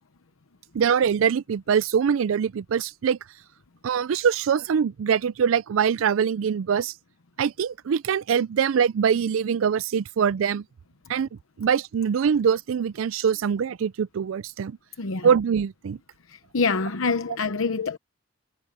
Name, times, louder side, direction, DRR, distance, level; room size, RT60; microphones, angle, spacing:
voice 1, 0.7-3.2 3.8-6.9 7.4-10.6 11.1-11.3 11.6-14.8 15.2-16.0, right 7 dB, 75° right, 0.4 m, -23 dB
voice 2, 15.0-15.3 16.3-18.0, left 4 dB, 85° left, 0.9 m, -26 dB
head